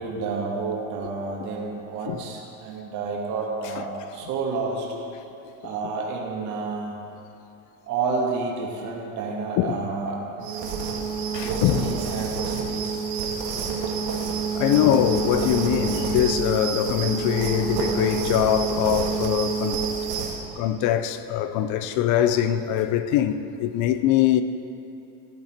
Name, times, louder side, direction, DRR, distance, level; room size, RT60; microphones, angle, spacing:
voice 1, 0.0-4.9 5.6-7.0 7.9-10.3 11.3-13.0, right 4 dB, 45° right, 2.0 m, -30 dB
sound 1, 10.4-20.4, right 5 dB, 75° right, 2.1 m, -27 dB
voice 2, 11.3-11.9 12.7-12.8 14.5-19.8 20.5-24.4, left 11 dB, 50° left, 0.6 m, -23 dB
14.0 x 10.5 x 4.5 m
cardioid pair, 150°, 40 cm